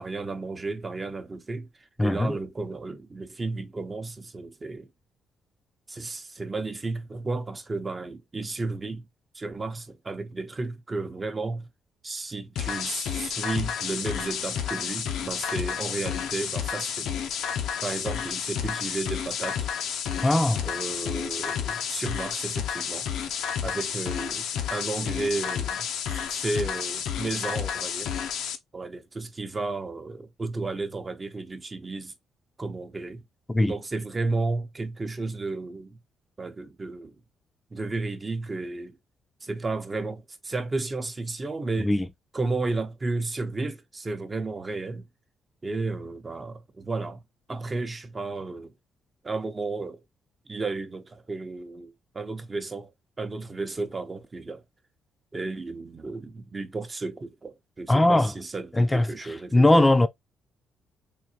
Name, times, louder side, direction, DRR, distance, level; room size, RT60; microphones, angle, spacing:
voice 1, 0.0-1.7 2.0-4.9 5.9-9.0 9.3-11.7 12.0-17.1 17.8-19.7 20.6-23.1 23.6-28.1 28.7-32.1 32.6-33.2 33.7-36.0 36.4-37.2 37.7-39.0 39.4-41.9 42.3-45.1 45.6-47.2 47.5-48.7 49.2-50.0 50.5-52.9 53.2-54.6 55.3-59.8, right 3 dB, 30° right, 0.8 m, -33 dB
voice 2, 2.0-2.4 20.2-20.7 33.5-33.7 41.8-42.0 57.9-58.3 58.8-59.1 59.5-60.1, left 1 dB, 15° left, 0.5 m, -20 dB
sound 1, 12.6-28.6, left 8 dB, 80° left, 0.6 m, -31 dB
3.8 x 2.7 x 2.8 m
cardioid pair, 90°, 0 cm